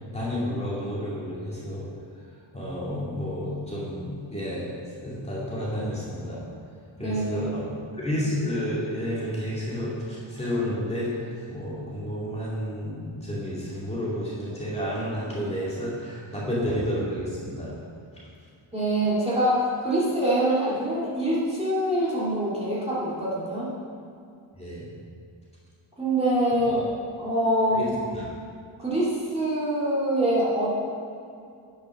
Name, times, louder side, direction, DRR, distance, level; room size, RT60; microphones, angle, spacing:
voice 1, 0.1-1.9 2.5-4.7 5.0-6.4 7.0-7.6 7.9-17.7 24.6-24.9 27.7-27.9 28.1-28.3, equal, 15° left, -8 dB, 2.4 m, -30 dB
voice 2, 7.0-7.7 18.7-23.7 26.0-26.8 27.2-27.8 28.8-30.7, right 1 dB, 10° right, -9 dB, 2.2 m, -25 dB
9.6 x 6.0 x 6.2 m, 2.4 s
wide cardioid pair, 145°, 49 cm